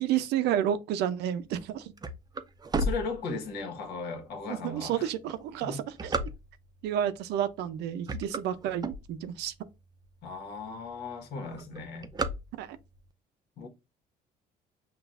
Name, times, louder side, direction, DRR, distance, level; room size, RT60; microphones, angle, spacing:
voice 1, 0.0-1.8 4.6-5.8 6.8-9.5 12.6-12.8, right 10 dB, 85° right, 0.6 m, -30 dB
sound 1, 1.5-3.8 4.4-4.5 5.1-6.8 7.5-7.7 8.0-9.5 10.0-10.1 10.3-10.4 10.7-11.1 11.3-13.0, right 2 dB, 25° right, 0.5 m, -33 dB
voice 2, 2.8-5.1 5.6-5.8 10.2-12.1 13.6-13.7, left 4 dB, 75° left, 1.4 m, -37 dB
5.9 x 2.5 x 2.5 m
cardioid pair, 110°, 17 cm